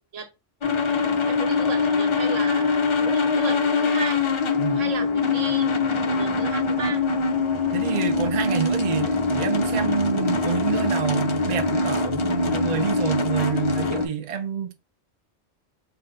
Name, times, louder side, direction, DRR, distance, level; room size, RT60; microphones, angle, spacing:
sound 1, 0.6-14.1, left 3 dB, 45° left, 0.3 m, -23 dB
voice 1, 1.2-4.2 4.7-5.7 6.1-7.0, right 5 dB, 80° right, 1.3 m, -34 dB
voice 2, 4.6-4.9 7.7-14.7, right 8 dB, 50° right, 0.5 m, -28 dB
3.3 x 2.5 x 3.7 m
omnidirectional pair, 1.3 m